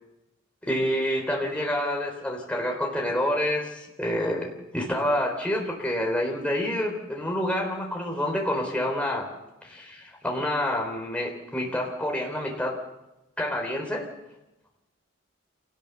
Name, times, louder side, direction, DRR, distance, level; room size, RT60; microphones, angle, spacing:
voice 1, 0.6-9.3 9.6-12.8 13.4-14.1, left 1 dB, 5° left, 0 dB, 3.9 m, -28 dB
26.5 x 18.5 x 7.0 m, 0.98 s
head